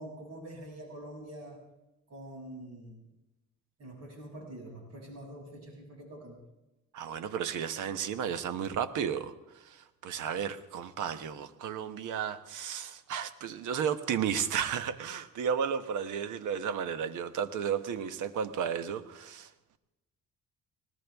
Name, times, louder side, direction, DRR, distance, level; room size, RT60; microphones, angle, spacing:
voice 1, 0.0-1.6 2.1-3.1 3.8-6.4, right 1 dB, 55° right, 0 dB, 6.9 m, -45 dB
voice 2, 6.9-19.5, right 8 dB, 80° right, 12 dB, 1.2 m, -33 dB
20.0 x 19.5 x 3.5 m, 0.97 s
cardioid pair, 90°, 30 cm